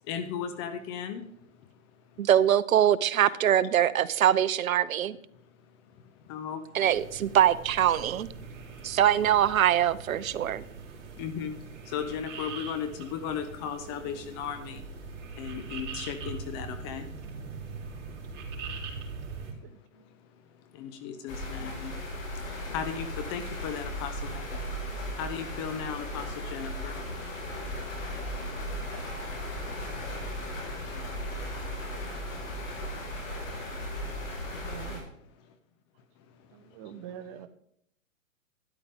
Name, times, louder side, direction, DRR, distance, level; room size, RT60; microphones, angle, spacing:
voice 1, 0.1-1.2 6.3-7.0 11.2-11.5 11.9-14.8 15.4-17.0 20.8-21.9 22.7-24.4 25.2-26.2 26.5-26.9, left 8 dB, 20° left, 9 dB, 0.5 m, -35 dB
voice 2, 2.2-5.2 6.7-8.3 8.8-10.6, right 10 dB, 75° right, 17 dB, 0.8 m, -23 dB
sound 1, 6.9-19.5, right 4 dB, 55° right, 3.2 m, -42 dB
voice 3, 19.6-20.1 34.6-35.1 36.5-37.5, right 9 dB, 25° right, 11 dB, 0.7 m, -45 dB
sound 2, 21.3-35.0, equal, 65° left, 5.1 m, -36 dB
13.0 x 10.5 x 3.6 m, 0.71 s
hypercardioid pair, 140°, 42 cm